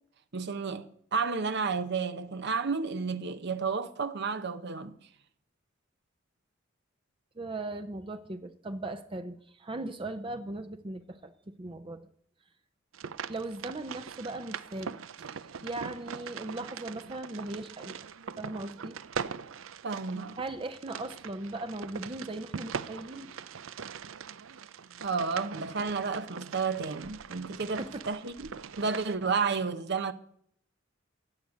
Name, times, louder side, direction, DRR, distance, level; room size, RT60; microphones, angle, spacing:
voice 1, 0.3-4.9 19.8-20.4 25.0-28.5 28.8-30.1, right 5 dB, 60° right, 0.9 m, -31 dB
voice 2, 7.4-11.3 11.6-12.1 13.3-18.0 18.4-19.0 20.4-23.3 27.8-28.0, right 2 dB, 25° right, 0.7 m, -38 dB
sound 1, 12.9-29.2, right 6 dB, 85° right, 0.6 m, -42 dB
15.5 x 7.8 x 8.4 m
head